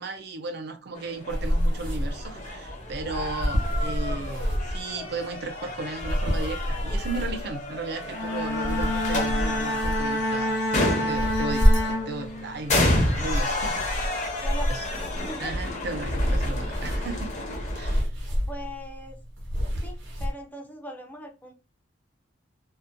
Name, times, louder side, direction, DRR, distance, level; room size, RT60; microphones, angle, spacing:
voice 1, 0.0-10.6 11.0-14.4 14.7-14.9 15.4-17.3 17.7-18.1, right 3 dB, 60° right, 0.4 m, -35 dB
sound 1, 0.9-18.0, left 1 dB, 40° left, 0.8 m, -31 dB
sound 2, 1.3-20.3, equal, 85° right, 1.0 m, -29 dB
Bowed string instrument, 8.0-12.7, left 1 dB, 70° left, 0.8 m, -28 dB
voice 2, 14.4-14.9 15.2-15.5 18.5-19.2 19.8-21.5, left 1 dB, 10° left, 0.4 m, -39 dB
2.7 x 2.1 x 2.4 m
head